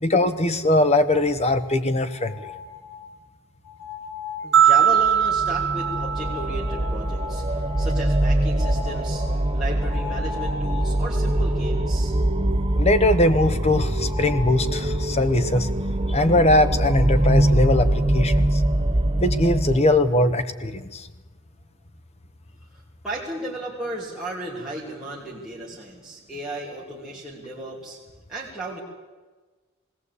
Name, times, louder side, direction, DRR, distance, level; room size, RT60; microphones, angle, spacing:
voice 1, 0.0-2.3 12.8-15.7 16.1-18.6 19.2-21.1, left 1 dB, 30° left, 9 dB, 1.2 m, -21 dB
sound 1, 2.1-3.2 3.6-4.6 5.8-11.4 11.8-11.9 12.3-12.4 14.0-14.6 16.8-16.9 17.2-17.6, left 8 dB, 60° left, 3.8 m, -38 dB
voice 2, 4.4-12.2 22.7-28.0 28.3-28.8, right 1 dB, 5° right, -7 dB, 3.1 m, -35 dB
sound 2, 4.5-6.9, right 9 dB, 70° right, 1.3 m, -20 dB
sound 3, 5.0-19.8, right 1 dB, 25° right, 0.9 m, -23 dB
20.0 x 17.5 x 8.4 m, 1.3 s
head